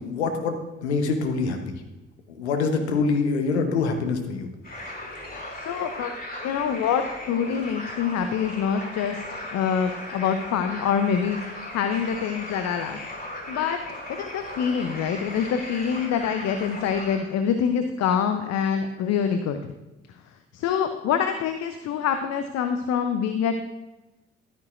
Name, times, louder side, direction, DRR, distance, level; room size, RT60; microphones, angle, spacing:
voice 1, 0.0-1.7 2.4-4.5, left 4 dB, 80° left, 5 dB, 1.0 m, -25 dB
sound 1, 4.6-17.2, left 1 dB, 25° left, 2.9 m, -37 dB
voice 2, 5.6-6.1 6.4-9.2 9.5-13.0 13.5-13.8 14.1-19.6 20.5-23.6, left 7 dB, 50° left, 8 dB, 0.7 m, -25 dB
12.5 x 9.1 x 2.5 m, 1.0 s
figure-of-eight pair, 45°, 33 cm